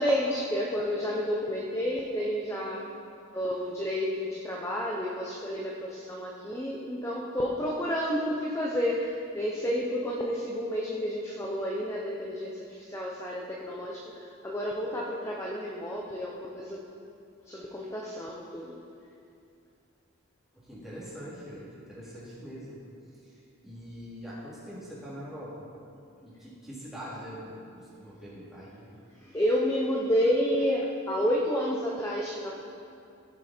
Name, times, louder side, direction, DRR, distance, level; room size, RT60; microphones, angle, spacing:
voice 1, 0.0-2.8 3.3-16.8 17.5-18.8 29.2-32.5, equal, 15° left, -3 dB, 0.9 m, -30 dB
voice 2, 20.5-22.8 23.2-25.7 26.2-28.9, equal, ahead, -10 dB, 3.2 m, -43 dB
16.5 x 7.7 x 4.5 m, 2.5 s
head